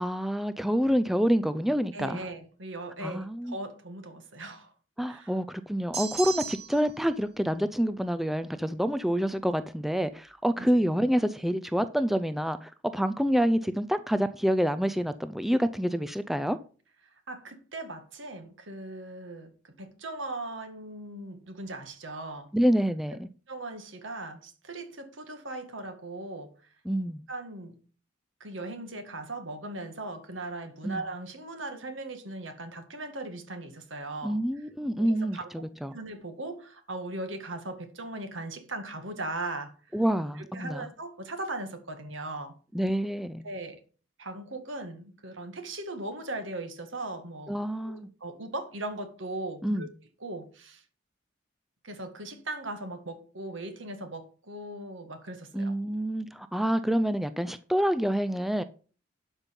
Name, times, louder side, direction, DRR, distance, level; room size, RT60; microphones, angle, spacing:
voice 1, 0.0-2.2 3.0-3.5 5.0-16.6 22.5-23.3 26.9-27.2 30.8-31.0 34.2-35.9 39.9-40.9 42.7-43.4 47.5-48.1 49.6-49.9 55.5-58.6, equal, ahead, 0.4 m, -27 dB
voice 2, 1.9-4.7 5.0-5.3 10.6-10.9 17.3-22.5 23.5-26.5 27.3-27.8 28.4-34.4 35.0-35.7 35.9-40.0 40.4-42.6 43.4-43.8 44.2-47.5 47.8-49.9 50.2-50.8 51.8-55.7, right 2 dB, 85° right, 1.9 m, -39 dB
sound 1, 5.9-6.9, right 5 dB, 35° right, 2.7 m, -35 dB
11.5 x 5.4 x 5.3 m
head